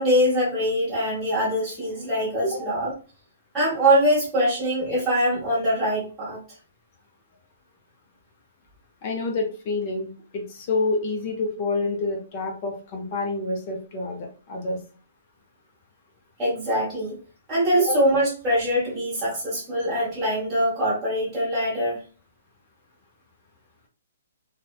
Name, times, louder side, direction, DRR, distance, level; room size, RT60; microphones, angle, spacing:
voice 1, 0.0-2.9 3.5-6.4 16.4-17.1 17.5-22.0, equal, 5° right, -9 dB, 1.0 m, -23 dB
voice 2, 9.0-14.8 17.8-18.0, left 2 dB, 25° left, 2 dB, 0.5 m, -28 dB
2.8 x 2.1 x 2.3 m, 0.36 s
hypercardioid pair, 180°, 0 cm